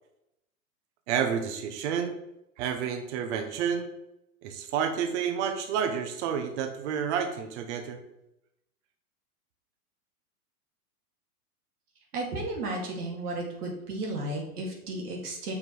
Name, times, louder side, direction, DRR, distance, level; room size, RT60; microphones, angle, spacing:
voice 1, 1.1-2.1 2.6-3.9 4.4-8.0, right 7 dB, 50° right, 6 dB, 0.9 m, -30 dB
voice 2, 12.1-15.5, right 2 dB, 75° right, 0 dB, 2.5 m, -33 dB
5.9 x 4.7 x 4.6 m, 0.85 s
hypercardioid pair, 130°, 46 cm